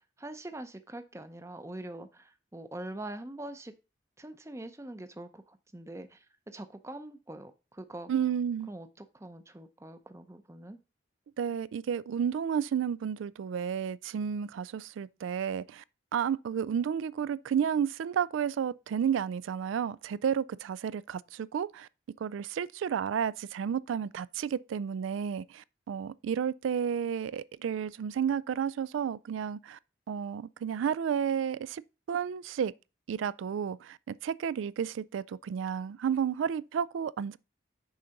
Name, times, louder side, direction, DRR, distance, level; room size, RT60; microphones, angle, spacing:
voice 1, 0.2-3.7 4.2-6.2 6.5-8.1 8.7-10.8, right 1 dB, 15° right, 0.6 m, -43 dB
voice 2, 8.1-8.7 11.4-15.8 16.1-21.9 22.2-29.8 30.1-31.8 32.1-32.7 33.1-37.4, right 8 dB, 80° right, 0.3 m, -32 dB
6.4 x 4.0 x 5.7 m
head